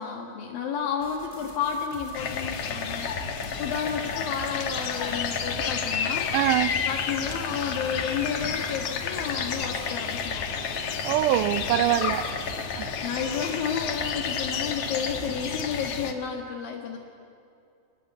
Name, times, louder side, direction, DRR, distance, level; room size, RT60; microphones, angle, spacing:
voice 1, 0.0-6.3 6.8-10.4 13.0-17.0, left 7 dB, 75° left, 1 dB, 3.2 m, -31 dB
sound 1, 1.0-16.1, right 2 dB, 25° right, 0.7 m, -46 dB
sound 2, 2.1-16.1, left 6 dB, 55° left, 1.8 m, -30 dB
voice 2, 6.3-6.8 11.0-12.3 12.8-12.9, right 13 dB, 75° right, 13 dB, 2.0 m, -23 dB
26.5 x 20.0 x 8.1 m, 2.6 s
omnidirectional pair, 4.2 m